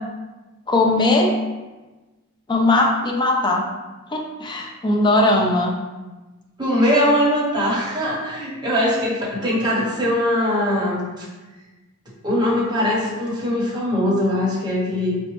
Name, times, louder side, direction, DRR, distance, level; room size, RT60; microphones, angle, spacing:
voice 1, 0.7-1.3 2.5-3.6 4.1-5.7, left 2 dB, 20° left, 0 dB, 0.4 m, -19 dB
voice 2, 6.6-11.2 12.2-15.2, left 1 dB, 20° right, -5 dB, 0.8 m, -21 dB
4.3 x 2.0 x 2.9 m, 1.2 s
head